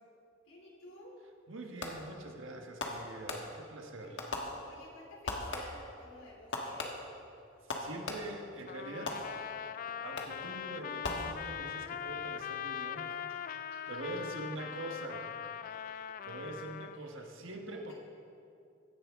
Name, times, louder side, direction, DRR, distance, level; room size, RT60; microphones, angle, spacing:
voice 1, 0.4-1.1 4.0-6.9 13.1-14.0 14.8-14.9 15.6-16.2 16.9-17.3 17.7-17.9, left 1 dB, 85° left, -2 dB, 3.0 m, -54 dB
voice 2, 1.5-4.2 7.7-9.2 9.9-13.1 13.9-15.2 16.2-17.9, right 2 dB, 75° right, 2 dB, 1.3 m, -44 dB
Fireworks, 1.8-2.2 2.8-3.8 4.2-5.0 5.3-6.0 6.5-8.5 9.1-9.7 10.2-10.6 11.0-11.8, left 2 dB, 65° left, 1.4 m, -40 dB
Trumpet, 8.7-17.0, left 8 dB, 45° left, 0.3 m, -41 dB
16.0 x 10.0 x 3.6 m, 2.5 s
head